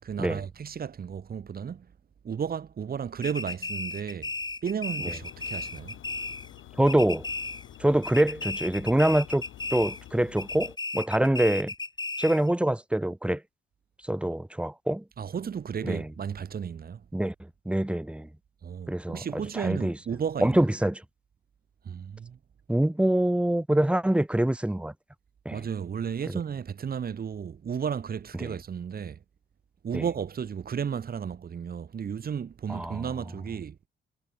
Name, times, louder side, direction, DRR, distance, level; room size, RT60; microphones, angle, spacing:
voice 1, 0.0-1.9 2.2-4.3 4.6-6.0 15.2-17.0 18.6-20.6 21.8-22.4 25.5-29.2 29.8-33.8, right 7 dB, 50° right, 3.7 m, -33 dB
sound 1, 3.2-6.6 6.9-7.8 8.0-10.1 10.4-12.5, left 3 dB, 20° left, 3.6 m, -35 dB
sound 2, 5.0-10.8, left 13 dB, 80° left, 4.1 m, -48 dB
voice 2, 6.8-7.3 7.8-9.4 9.7-11.7 12.2-13.4 14.1-15.0 15.8-16.1 17.1-17.3 17.6-18.3 18.9-19.9 20.4-21.0 22.7-24.9 25.4-25.6 28.4-28.5 29.9-30.0 32.7-33.0, right 1 dB, 5° right, 1.3 m, -25 dB
cardioid pair, 90°, 20 cm